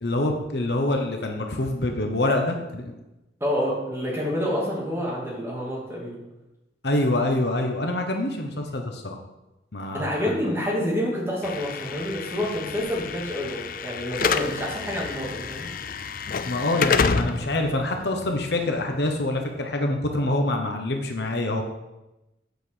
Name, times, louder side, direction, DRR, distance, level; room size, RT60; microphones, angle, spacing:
voice 1, 0.0-2.9 6.8-9.2 9.7-10.4 16.4-21.6, left 1 dB, 65° left, 3 dB, 1.1 m, -26 dB
voice 2, 3.4-6.2 9.9-15.7, equal, 15° right, -5 dB, 2.6 m, -28 dB
Slam / Alarm, 11.4-19.5, left 5 dB, 50° left, 0.4 m, -29 dB
8.3 x 5.3 x 6.4 m, 0.96 s
head